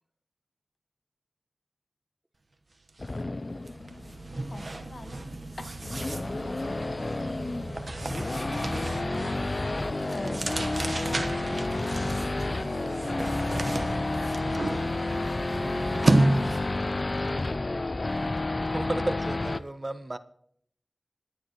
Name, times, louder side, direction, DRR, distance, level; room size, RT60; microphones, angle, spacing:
sound 1, 2.9-3.1 3.4-16.8, right 2 dB, 60° right, 1.0 m, -32 dB
Race car auto racing / Idling / Accelerating revving vroom, 3.0-19.6, left 2 dB, 50° left, 0.5 m, -31 dB
voice 1, 4.3-6.9 8.1-8.8 9.7-12.8, left 2 dB, 65° left, 6 dB, 1.3 m, -45 dB
voice 2, 13.7-14.3 14.6-15.0 15.4-16.5, right 1 dB, 20° right, 9 dB, 1.0 m, -46 dB
voice 3, 18.6-20.2, right 2 dB, 40° right, 12 dB, 0.8 m, -33 dB
27.0 x 10.0 x 3.0 m, 0.67 s
cardioid pair, 45°, 0 cm